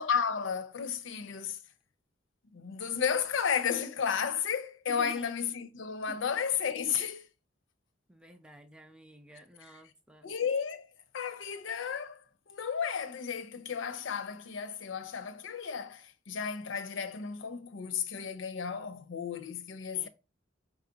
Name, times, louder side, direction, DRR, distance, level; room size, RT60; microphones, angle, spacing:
voice 1, 0.0-1.6 2.5-7.3 9.3-9.8 10.2-10.9 11.1-20.1, left 7 dB, 80° left, 0.5 m, -33 dB
voice 2, 4.9-5.3 6.1-6.2 8.1-10.3 19.9-20.1, right 1 dB, 5° right, 0.4 m, -50 dB
4.9 x 2.4 x 3.8 m
head